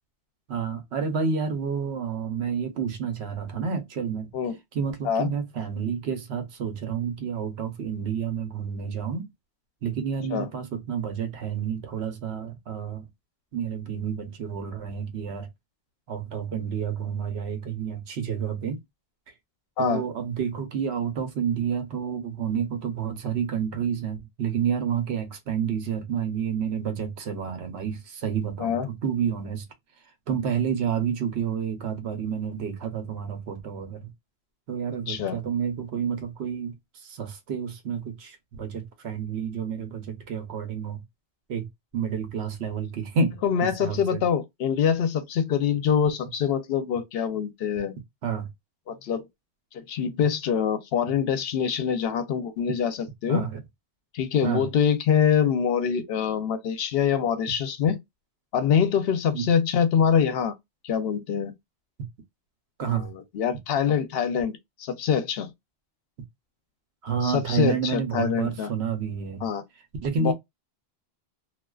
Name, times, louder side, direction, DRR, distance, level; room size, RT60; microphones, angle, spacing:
voice 1, 0.5-4.3 4.7-9.3 9.8-13.1 13.5-15.5 16.1-18.8 19.8-29.6 30.3-34.1 34.7-36.7 37.0-41.0 41.5-41.7 41.9-44.2 48.2-48.5 53.3-53.6 54.4-54.6 59.3-59.5 62.8-63.1 67.0-69.4 70.0-70.3, right 7 dB, 80° right, 1.0 m, -29 dB
voice 2, 35.1-35.4 43.4-47.9 48.9-49.3 49.7-53.4 54.1-58.0 58.5-60.5 60.8-61.5 62.9-65.5 67.2-68.7 69.4-69.6 70.2-70.3, left 7 dB, 70° left, 0.8 m, -25 dB
2.4 x 2.3 x 2.2 m
omnidirectional pair, 1.1 m